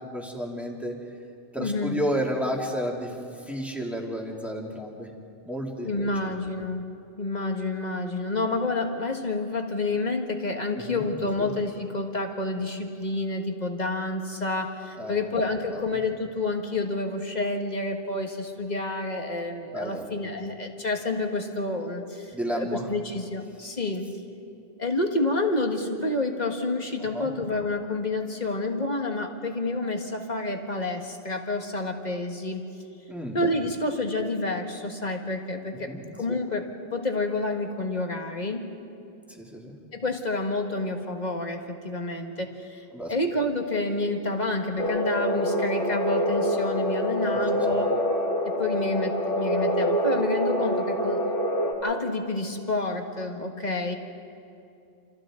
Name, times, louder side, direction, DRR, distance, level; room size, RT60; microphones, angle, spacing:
voice 1, 0.1-0.9 1.5-5.1 5.4-5.9 6.2-6.3 10.7-11.0 11.4-11.5 15.0-15.2 15.7-15.8 19.7-20.0 22.3-22.9 27.1-27.3 33.1-33.4 35.9-36.0 39.4-39.8 42.9-43.1 47.5-47.6, equal, ahead, -2 dB, 2.7 m, -31 dB
voice 2, 1.6-2.0 5.8-6.8 7.2-24.1 24.8-32.6 33.3-35.9 36.2-38.7 39.9-47.9 48.5-51.3 51.8-53.9, left 2 dB, 35° left, 3 dB, 1.8 m, -29 dB
sound 1, 44.8-51.7, equal, 80° left, 3.1 m, -26 dB
28.5 x 28.0 x 3.8 m, 2.6 s
omnidirectional pair, 1.2 m